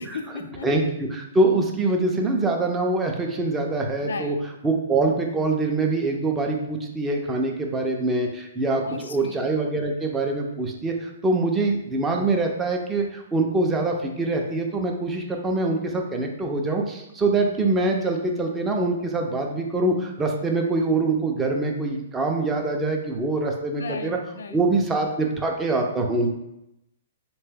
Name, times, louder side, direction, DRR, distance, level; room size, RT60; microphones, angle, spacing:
voice 1, 0.1-0.7 4.0-4.4 8.8-9.4 23.8-24.6, left 4 dB, 90° left, 7 dB, 0.3 m, -35 dB
voice 2, 1.1-4.4 4.6-24.2 24.5-26.3, right 2 dB, 10° right, 2 dB, 0.4 m, -24 dB
3.2 x 2.2 x 3.3 m, 0.87 s
hypercardioid pair, 160°, 0 cm